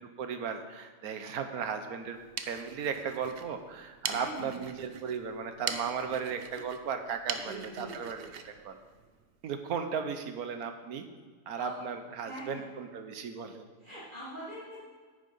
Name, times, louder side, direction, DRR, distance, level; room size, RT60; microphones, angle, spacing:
voice 1, 0.2-2.2 2.5-8.8 9.4-11.0 11.5-13.7, right 6 dB, 85° right, 7 dB, 1.4 m, -36 dB
sound 1, 2.0-9.6, right 6 dB, 55° right, 0.7 m, -42 dB
voice 2, 4.1-4.7 7.4-8.0 11.6-11.8 12.2-12.7 13.8-14.8, right 1 dB, 35° right, -9 dB, 2.4 m, -43 dB
9.4 x 8.5 x 5.5 m, 1.5 s
omnidirectional pair, 1.5 m